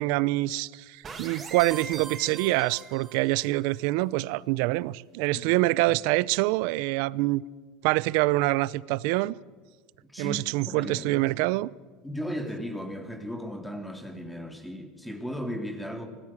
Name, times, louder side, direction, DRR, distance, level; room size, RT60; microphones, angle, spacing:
voice 1, 0.0-7.4 7.8-9.3 10.2-11.7, right 19 dB, 70° right, 0.6 m, -25 dB
sound 1, 1.0-3.5, right 5 dB, 25° right, 4.9 m, -40 dB
voice 2, 10.7-11.2 12.0-16.1, equal, 5° left, 2.8 m, -36 dB
25.5 x 19.0 x 7.5 m
supercardioid pair, 125°, 0 cm